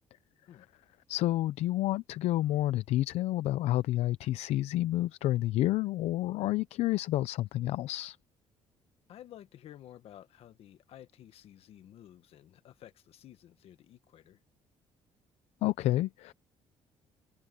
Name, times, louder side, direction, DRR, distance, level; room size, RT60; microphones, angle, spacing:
voice 1, 1.1-8.2 15.6-16.3, left 15 dB, 80° left, 0.6 m, -29 dB
voice 2, 9.1-14.4, left 11 dB, 65° left, 1.4 m, -53 dB
cardioid pair, 120°, 11 cm